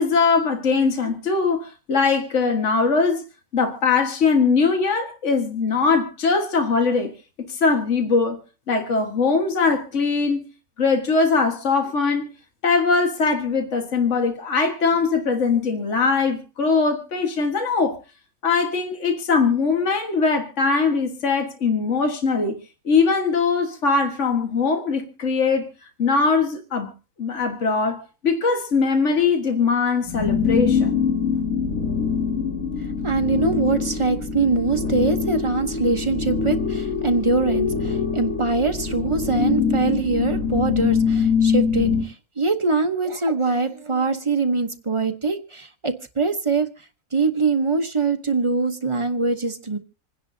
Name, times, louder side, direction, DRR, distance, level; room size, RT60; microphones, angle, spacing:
voice 1, 0.0-3.2 3.5-8.4 8.7-10.4 10.8-12.3 12.6-18.0 18.4-22.6 22.9-25.7 26.0-26.9 27.2-31.0, left 4 dB, 60° left, 1.9 m, -21 dB
sound 1, 30.0-42.0, left 6 dB, 90° left, 3.8 m, -23 dB
voice 2, 33.0-46.7 47.1-49.8, right 3 dB, 25° right, 1.0 m, -23 dB
27.0 x 10.0 x 2.7 m
omnidirectional pair, 1.4 m